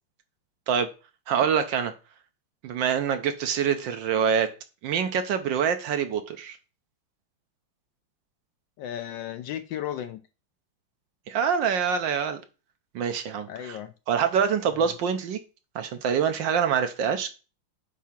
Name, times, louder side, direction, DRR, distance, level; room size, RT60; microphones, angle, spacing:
voice 1, 1.3-1.9 2.6-4.5 4.8-6.6 11.3-12.4 12.9-13.8 14.1-15.4 15.7-17.3, right 7 dB, 70° right, 1.3 m, -25 dB
voice 2, 8.8-10.2 13.5-13.9 14.6-14.9, left 11 dB, 75° left, 1.1 m, -35 dB
8.3 x 2.8 x 5.8 m
omnidirectional pair, 2.3 m